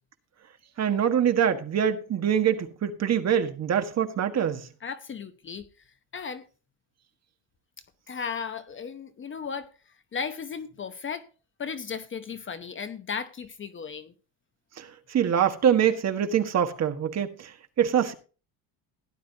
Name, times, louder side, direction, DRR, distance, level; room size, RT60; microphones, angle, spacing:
voice 1, 0.8-4.7 14.8-18.1, right 9 dB, 35° right, 1.6 m, -24 dB
voice 2, 4.8-5.7 6.1-6.5 8.1-11.3 11.6-14.1, left 6 dB, 25° left, 0.9 m, -35 dB
17.0 x 11.0 x 2.8 m
cardioid pair, 170°, 43 cm